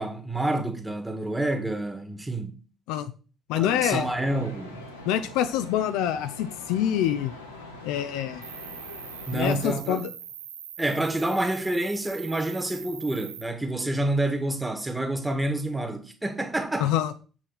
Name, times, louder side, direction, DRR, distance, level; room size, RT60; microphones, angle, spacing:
voice 1, 0.0-2.6 3.5-4.9 9.3-10.0 10.8-16.9, right 1 dB, 10° right, 1.7 m, -28 dB
voice 2, 3.5-4.1 5.1-7.3 7.8-8.4 9.3-10.1 16.8-17.1, left 10 dB, 65° left, 0.5 m, -26 dB
sound 1, 3.8-9.7, left 2 dB, 85° left, 1.2 m, -43 dB
Cricket, 8.4-13.4, right 8 dB, 80° right, 0.6 m, -42 dB
7.7 x 6.1 x 4.0 m
figure-of-eight pair, 45°, 0 cm